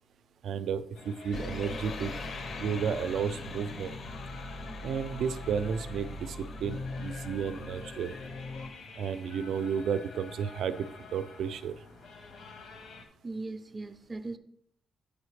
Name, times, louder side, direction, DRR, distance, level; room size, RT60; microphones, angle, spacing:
voice 1, 0.4-2.1 2.6-3.9 4.8-6.4 6.6-8.2 9.0-10.9 11.1-11.7, right 7 dB, 85° right, 12 dB, 0.4 m, -32 dB
sound 1, 0.9-13.1, left 4 dB, 80° left, 0.8 m, -49 dB
sound 2, 1.3-8.7, left 2 dB, 55° left, 0.5 m, -40 dB
voice 2, 13.2-14.4, right 3 dB, 20° right, 9 dB, 0.4 m, -38 dB
8.1 x 4.9 x 3.2 m, 0.75 s
wide cardioid pair, 155°, 0 cm